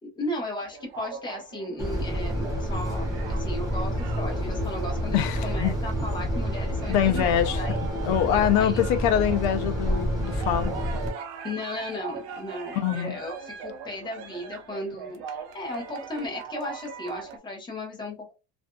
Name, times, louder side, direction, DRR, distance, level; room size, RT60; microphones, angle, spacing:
voice 1, 0.0-8.0 8.3-8.9 11.4-18.3, left 1 dB, 10° left, 0.9 m, -36 dB
sound 1, 0.6-17.4, right 6 dB, 75° right, 0.7 m, -41 dB
sound 2, 1.8-11.1, equal, 10° right, 0.7 m, -29 dB
voice 2, 5.1-5.7 6.9-7.6 8.0-10.7 12.7-13.2, left 10 dB, 65° left, 0.6 m, -24 dB
2.5 x 2.5 x 2.2 m
cardioid pair, 165°, 36 cm